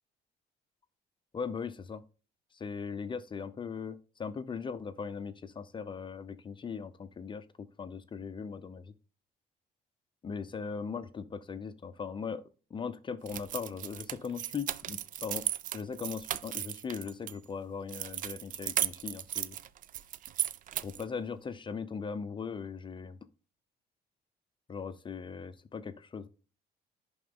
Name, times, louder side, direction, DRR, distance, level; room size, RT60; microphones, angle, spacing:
voice 1, 1.3-2.0 2.5-8.9 10.2-12.4 12.7-15.5 15.7-19.6 20.8-23.2 24.7-26.3, left 5 dB, 30° left, 12 dB, 0.7 m, -39 dB
sound 1, 13.3-17.3 17.9-21.1, right 11 dB, 50° right, 0.5 m, -36 dB
10.5 x 3.9 x 3.7 m, 0.35 s
cardioid pair, 110°, 17 cm